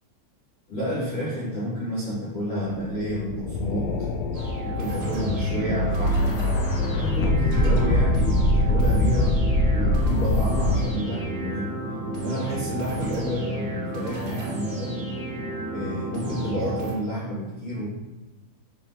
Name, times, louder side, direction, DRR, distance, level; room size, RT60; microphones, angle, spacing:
voice 1, 0.7-3.9 4.6-6.2 6.9-9.4 9.7-11.7 12.1-15.0 15.7-17.9, equal, 45° left, -10 dB, 2.3 m, -30 dB
sound 1, 2.7-10.8, left 1 dB, 90° left, 2.2 m, -24 dB
sound 2, 4.3-16.9, right 2 dB, 80° right, 0.8 m, -32 dB
sound 3, 5.6-9.0, equal, 65° left, 1.6 m, -29 dB
6.8 x 6.3 x 2.8 m, 1.2 s
omnidirectional pair, 5.3 m